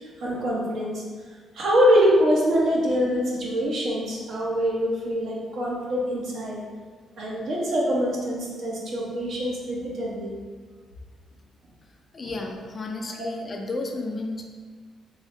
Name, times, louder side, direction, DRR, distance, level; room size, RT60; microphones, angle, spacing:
voice 1, 0.2-1.0 1.5-6.6 7.2-10.4 13.2-13.3, equal, 65° right, -4 dB, 0.9 m, -24 dB
voice 2, 12.1-14.4, left 2 dB, 35° left, 2 dB, 0.4 m, -32 dB
3.8 x 2.7 x 3.2 m, 1.5 s
cardioid pair, 90°, 0 cm